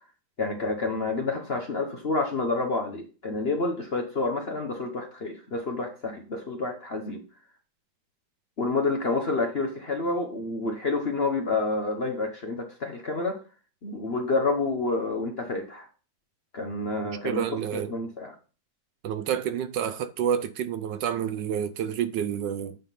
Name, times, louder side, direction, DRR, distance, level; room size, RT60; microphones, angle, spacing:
voice 1, 0.4-7.2 8.6-13.4 13.8-15.9 16.5-17.5 17.7-18.3, left 3 dB, 45° left, 0.9 m, -29 dB
voice 2, 17.2-17.9 19.0-22.8, right 9 dB, 75° right, 1.2 m, -29 dB
9.2 x 3.5 x 5.7 m
omnidirectional pair, 2.1 m